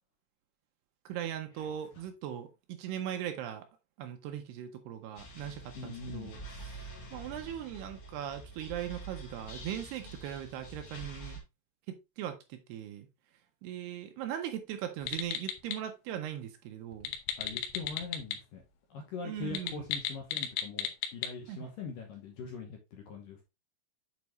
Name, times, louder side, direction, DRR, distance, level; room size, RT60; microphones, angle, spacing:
voice 1, 1.1-3.7 4.0-11.4 11.9-13.1 13.6-17.1 19.2-19.9 21.5-21.7, right 10 dB, 75° right, 2.7 m, -39 dB
sound 1, 5.1-11.4, right 2 dB, 50° left, 2.7 m, -46 dB
voice 2, 5.8-6.3 17.4-18.6 18.9-23.4, left 5 dB, 70° left, 2.3 m, -42 dB
sound 2, 15.0-15.8 16.9-18.4 18.6-18.7 19.4-21.3, left 9 dB, 90° left, 3.2 m, -35 dB
8.3 x 4.6 x 3.0 m
omnidirectional pair, 5.0 m